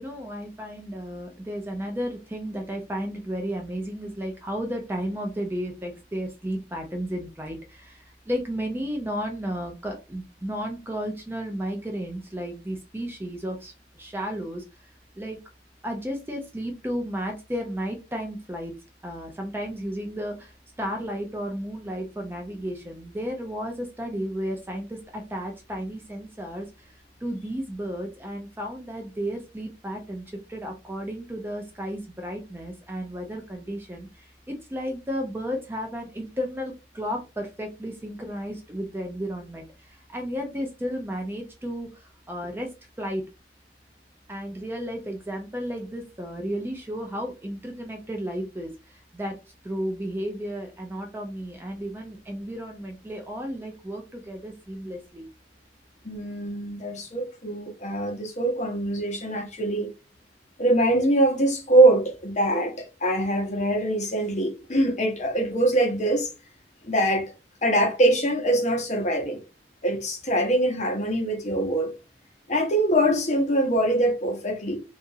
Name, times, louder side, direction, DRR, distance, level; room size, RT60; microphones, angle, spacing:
voice 1, 0.0-14.9 15.2-15.4 15.8-18.7 19.0-42.7 43.0-43.2 44.3-49.4 49.6-55.3, equal, 10° right, 0.4 m, -33 dB
voice 2, 56.0-59.9 60.6-66.3 66.8-67.3 67.6-69.4 69.8-71.9 72.5-74.8, right 1 dB, 40° left, 0.8 m, -23 dB
2.8 x 2.4 x 2.6 m
head